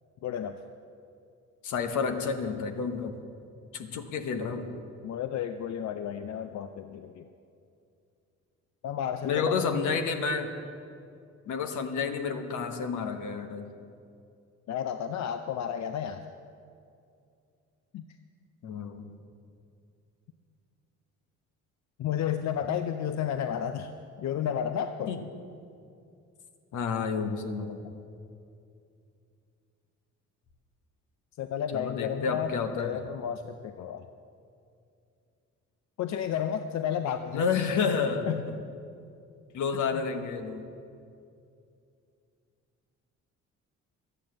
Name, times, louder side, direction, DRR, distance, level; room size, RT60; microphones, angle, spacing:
voice 1, 0.2-0.6 5.0-7.3 8.8-9.8 14.7-16.2 17.9-18.1 22.0-23.9 24.2-25.2 31.4-34.1 36.0-37.4 38.3-38.5 39.9-40.0, left 9 dB, 65° left, 9 dB, 0.6 m, -32 dB
voice 2, 1.6-3.1 3.7-4.7 9.2-10.5 11.5-13.7 18.6-19.1 25.1-25.2 26.7-27.9 31.7-32.9 37.3-38.5 39.5-40.7, left 5 dB, 80° left, 6 dB, 1.2 m, -30 dB
12.0 x 9.0 x 7.6 m, 2.5 s
cardioid pair, 90°, 30 cm